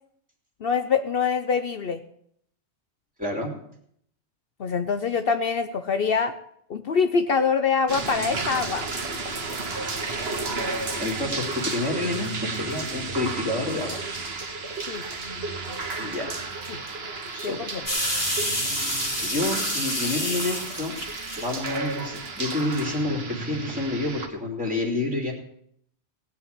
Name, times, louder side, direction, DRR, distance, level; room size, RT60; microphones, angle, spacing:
voice 1, 0.6-2.0 4.6-6.3 6.7-8.8 14.9-15.0 16.7-16.8 17.4-17.8, left 5 dB, 60° left, 9 dB, 1.0 m, -24 dB
voice 2, 3.2-3.5 11.0-14.0 16.0-16.4 17.3-17.7 18.4-18.7 19.2-21.0 21.4-25.3, left 2 dB, 5° right, 0 dB, 2.9 m, -29 dB
sound 1, 7.9-24.3, right 3 dB, 65° right, 1.8 m, -32 dB
sound 2, 17.9-22.0 22.5-22.7, equal, 25° left, 3.0 m, -28 dB
17.5 x 5.9 x 9.6 m, 0.69 s
omnidirectional pair, 1.1 m